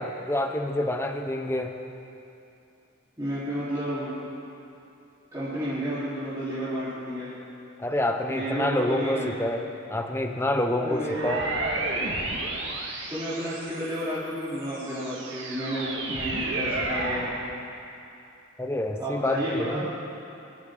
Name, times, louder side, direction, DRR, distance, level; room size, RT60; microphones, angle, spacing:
voice 1, 0.0-1.7 7.8-11.4 18.6-19.8, left 1 dB, 10° left, 5 dB, 0.9 m, -27 dB
voice 2, 3.2-4.2 5.3-7.3 8.3-9.3 10.8-11.3 13.1-17.3 19.0-19.9, equal, 15° right, -14 dB, 3.9 m, -31 dB
sound 1, 11.0-14.0 14.5-17.4, right 2 dB, 65° right, 2.1 m, -31 dB
25.0 x 14.0 x 3.9 m, 2.7 s
head